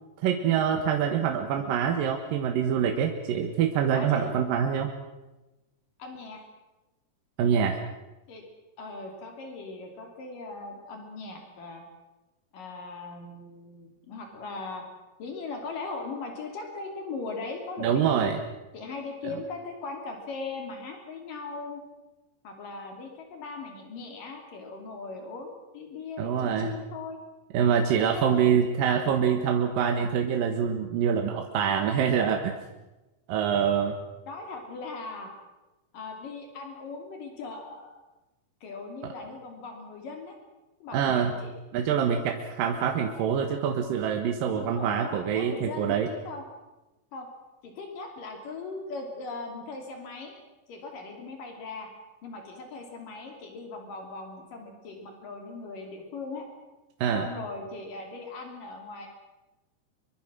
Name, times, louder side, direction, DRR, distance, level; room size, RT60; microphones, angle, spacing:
voice 1, 0.2-4.9 7.4-7.8 17.8-18.4 19.2-19.3 26.2-26.7 27.5-32.5 33.3-34.0 40.9-41.3 41.7-46.1 57.0-57.3, right 8 dB, 80° right, 4 dB, 3.1 m, -25 dB
voice 2, 3.9-4.3 6.0-6.4 8.3-8.4 8.8-11.8 12.5-14.8 15.2-18.3 18.7-21.8 22.4-27.2 27.9-28.9 34.3-35.3 35.9-37.9 38.6-40.3 40.8-41.6 42.6-43.6 44.6-46.4 47.1-47.3 47.6-50.4 50.7-51.9 52.2-56.5 57.1-59.1, left 3 dB, 75° left, 3 dB, 4.5 m, -39 dB
24.0 x 23.5 x 6.2 m, 1.1 s
omnidirectional pair, 3.9 m